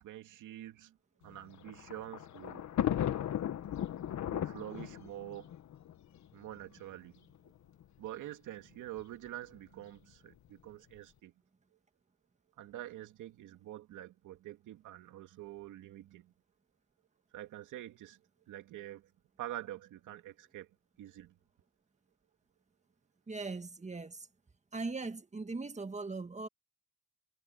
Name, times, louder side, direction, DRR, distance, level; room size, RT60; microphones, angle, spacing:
voice 1, 0.0-2.6 4.3-5.5 6.3-7.3 8.0-11.3 12.6-16.3 17.3-18.2 18.5-19.1 19.4-20.7 21.0-21.4, right 13 dB, 85° right, 2.7 m, -46 dB
Thunder, 1.3-6.6 7.5-7.6 7.8-7.9 9.0-9.3, left 11 dB, 65° left, 1.7 m, -36 dB
voice 2, 23.3-24.3 24.7-26.5, right 3 dB, 25° right, 1.8 m, -39 dB
cardioid pair, 90°, 30 cm